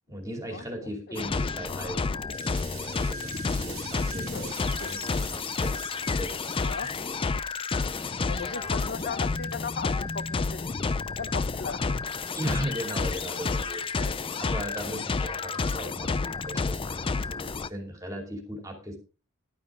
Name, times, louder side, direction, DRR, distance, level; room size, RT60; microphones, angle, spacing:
voice 1, 0.1-2.1 3.0-5.0 5.3-5.8 6.1-6.4 6.7-7.0 12.3-19.0, equal, 15° right, 2.6 m, -37 dB
sound 1, 1.1-17.7, left 4 dB, 25° left, 0.4 m, -30 dB
sound 2, 2.3-9.8, right 11 dB, 70° right, 1.4 m, -47 dB
voice 2, 4.1-4.5 4.8-5.0 6.5-6.9 8.3-10.7 11.1-12.0, left 5 dB, 45° left, 0.9 m, -37 dB
11.5 x 9.5 x 3.6 m
head